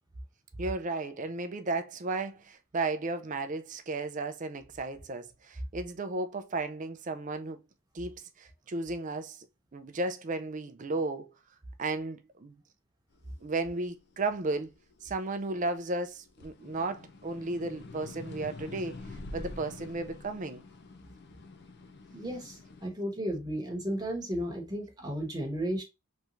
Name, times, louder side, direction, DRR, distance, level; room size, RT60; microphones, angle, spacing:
voice 1, 0.6-7.6 7.9-9.5 9.7-11.3 11.8-12.6 13.4-14.7 15.0-19.0 19.3-20.6, right 3 dB, 35° right, 0.4 m, -34 dB
sound 1, 13.3-15.8 16.2-22.9, left 2 dB, 50° left, 0.5 m, -46 dB
voice 2, 22.1-25.8, equal, 20° right, 1.1 m, -34 dB
3.5 x 3.0 x 2.5 m
head